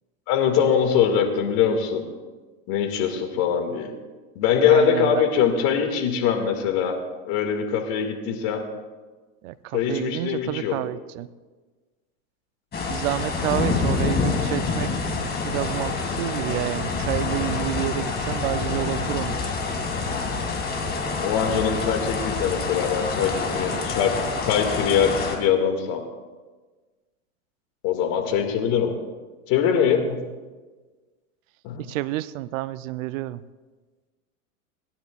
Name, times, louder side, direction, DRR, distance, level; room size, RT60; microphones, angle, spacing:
voice 1, 0.3-2.0 2.7-3.9 4.4-7.0 7.3-8.6 9.7-10.8 21.2-24.1 24.5-26.0 27.8-28.9 29.5-30.2 31.6-31.8, left 7 dB, 55° left, 5 dB, 2.1 m, -22 dB
voice 2, 4.6-5.3 9.4-11.3 12.9-14.9 15.3-19.5 31.8-33.4, right 16 dB, 65° right, 16 dB, 0.6 m, -29 dB
sound 1, 12.7-25.4, left 4 dB, 25° left, 2.1 m, -27 dB
25.5 x 10.5 x 2.4 m, 1.3 s
hypercardioid pair, 110°, 42 cm